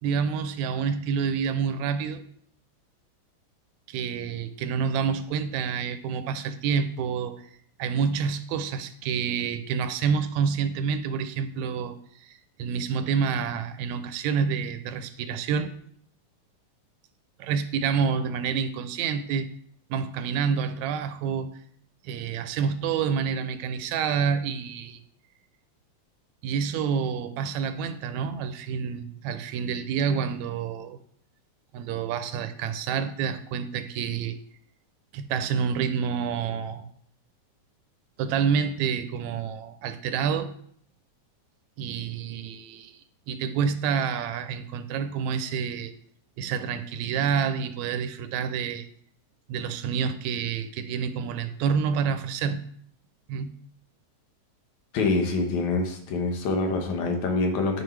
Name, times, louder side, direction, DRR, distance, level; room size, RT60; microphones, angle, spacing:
voice 1, 0.0-2.2 3.9-7.5 7.8-15.7 17.4-19.5 19.9-21.6 22.0-25.0 26.4-31.0 31.7-34.4 35.1-36.9 38.2-40.5 41.8-43.0 43.3-45.9 46.4-48.9 49.5-52.6 53.3-53.5, right 6 dB, 80° right, 11 dB, 1.9 m, -28 dB
voice 2, 54.9-57.8, left 3 dB, 80° left, 3 dB, 2.5 m, -25 dB
11.0 x 4.8 x 3.2 m, 0.63 s
omnidirectional pair, 3.3 m